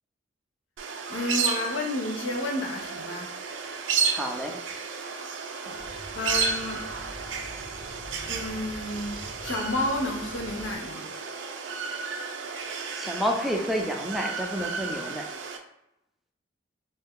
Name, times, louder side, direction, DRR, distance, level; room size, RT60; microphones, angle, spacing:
sound 1, 0.8-15.6, right 5 dB, 75° right, 0.4 m, -33 dB
voice 1, 1.1-3.3 5.6-5.8 6.1-6.8 8.3-11.1, left 2 dB, 85° left, 1 dB, 0.7 m, -31 dB
voice 2, 4.1-4.6 12.4-12.6 13.0-15.3, equal, ahead, 1 dB, 0.3 m, -30 dB
sound 2, 5.7-10.8, equal, 35° left, 1.0 m, -45 dB
2.6 x 2.2 x 3.5 m, 0.86 s
head